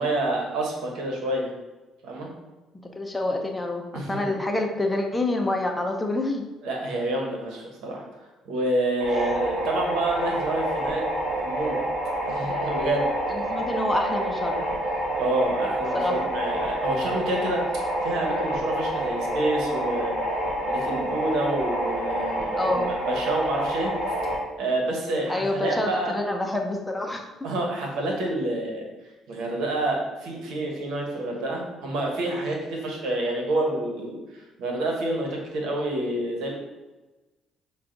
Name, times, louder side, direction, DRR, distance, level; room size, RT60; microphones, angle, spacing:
voice 1, 0.0-1.5 2.0-2.3 3.9-4.3 6.6-8.0 8.4-11.0 11.4-11.8 12.2-13.1 14.5-14.6 15.2-20.2 20.6-23.9 24.5-26.2 27.4-28.8 29.3-34.2 34.6-36.5, right 1 dB, 80° right, 0 dB, 1.1 m, -28 dB
voice 2, 3.0-6.5 9.1-9.3 13.3-14.7 15.9-16.3 22.5-22.9 25.3-27.2, left 2 dB, 15° left, 2 dB, 0.6 m, -27 dB
sound 1, 9.0-24.4, right 1 dB, 60° right, 1.4 m, -28 dB
5.7 x 2.4 x 3.8 m, 1.1 s
cardioid pair, 95°, 0 cm